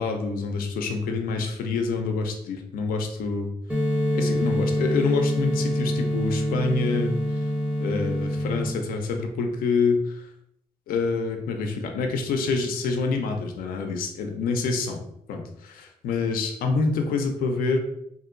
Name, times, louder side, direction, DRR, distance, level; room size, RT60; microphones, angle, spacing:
voice 1, 0.0-3.5 4.1-7.4 7.8-10.3 10.9-15.0 15.3-17.8, left 4 dB, 85° left, 4 dB, 0.5 m, -27 dB
sound 1, 3.7-8.7, equal, 5° right, 0.7 m, -25 dB
2.8 x 2.5 x 2.5 m, 0.75 s
cardioid pair, 70°, 14 cm